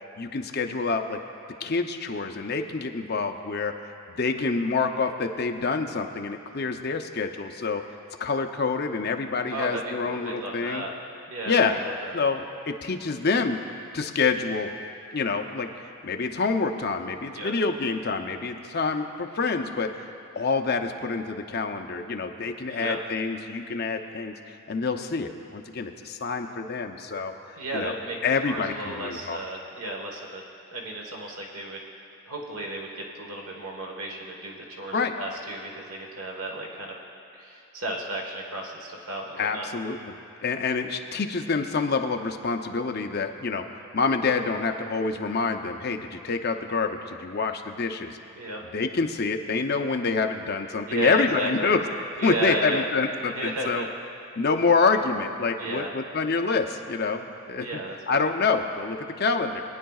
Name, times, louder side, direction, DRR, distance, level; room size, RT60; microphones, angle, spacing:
voice 1, 0.2-1.2 1.6-3.7 4.2-7.8 8.2-10.8 11.5-11.8 12.1-13.6 13.9-14.7 15.1-15.7 16.0-19.9 20.3-27.9 28.2-29.4 34.9-35.1 39.4-48.2 48.7-51.8 52.2-53.8 54.4-57.8 58.1-59.6, left 4 dB, 45° left, 4 dB, 0.6 m, -27 dB
voice 2, 9.5-10.9 11.3-12.1 17.3-17.5 22.7-23.0 27.6-28.2 28.4-30.4 30.7-31.8 32.3-36.9 37.4-39.7 48.4-48.6 50.9-51.7 52.2-52.9 53.3-53.9 55.6-55.9 57.6-58.3, right 1 dB, 75° right, -1 dB, 1.3 m, -33 dB
21.0 x 10.0 x 2.4 m, 2.6 s
head